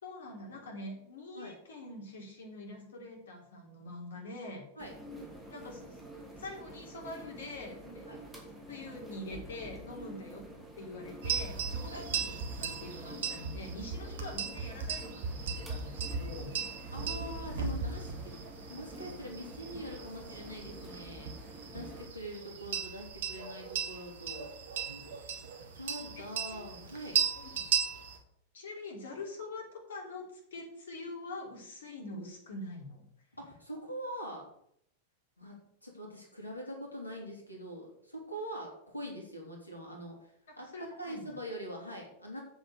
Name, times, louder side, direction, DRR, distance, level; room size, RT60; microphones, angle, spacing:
voice 1, 0.0-4.6 5.5-6.0 6.4-8.1 8.7-10.4 10.8-16.5 26.5-26.7 27.3-27.6 28.5-33.1 40.5-41.3, left 2 dB, 65° left, 0 dB, 3.3 m, -44 dB
sound 1, 4.8-22.1, right 1 dB, 5° right, 2.8 m, -48 dB
sound 2, 11.2-28.2, right 6 dB, 60° right, 1.8 m, -37 dB
voice 2, 16.9-18.4 18.7-24.5 25.8-27.2 33.4-34.5 35.4-42.4, equal, 85° left, 0 dB, 3.0 m, -43 dB
7.8 x 7.0 x 6.7 m, 0.72 s
figure-of-eight pair, 90°, 0 cm